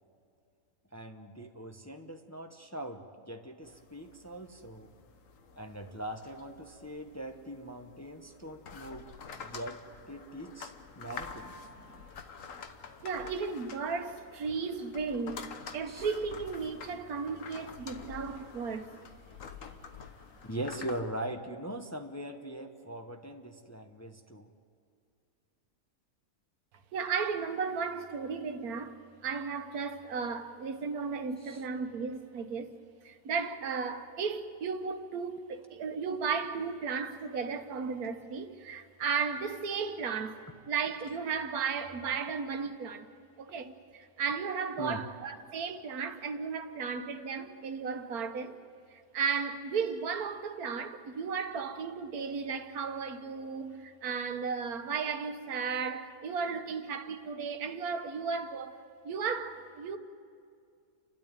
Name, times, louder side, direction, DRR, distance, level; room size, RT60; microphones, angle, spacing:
voice 1, 0.9-4.9 5.6-9.1 9.3-9.8 10.1-11.6 15.9-16.1 20.4-24.5 31.4-31.6 44.8-45.0, right 1 dB, 15° left, 0.8 m, -41 dB
sound 1, 3.6-21.0, left 5 dB, 65° left, 1.4 m, -48 dB
voice 2, 13.0-15.5 15.7-18.9 26.9-32.7 33.0-43.1 43.4-48.6 48.9-60.0, right 5 dB, 90° right, 1.5 m, -35 dB
30.0 x 12.5 x 9.1 m
omnidirectional pair, 1.5 m